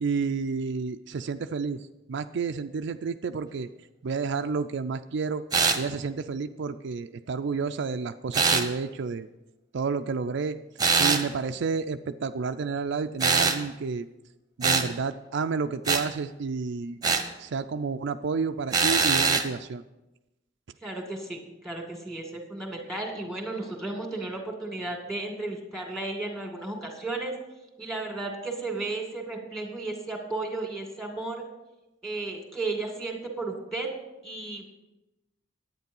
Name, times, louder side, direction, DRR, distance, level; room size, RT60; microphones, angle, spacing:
voice 1, 0.0-1.8 2.1-3.7 4.0-5.4 5.8-9.3 9.7-10.6 11.0-14.1 14.6-17.0 17.4-19.8, right 5 dB, 65° right, 8 dB, 0.4 m, -30 dB
sound 1, 5.5-5.8 8.3-8.7 10.8-11.2 13.2-13.6 14.6-14.9 15.8-16.0 17.0-17.3 18.7-19.5, right 4 dB, 20° right, 1.0 m, -22 dB
voice 2, 20.8-27.4 27.8-31.4 32.0-33.9 34.2-34.7, right 2 dB, ahead, 1 dB, 2.2 m, -34 dB
10.5 x 9.1 x 5.4 m, 1.0 s
head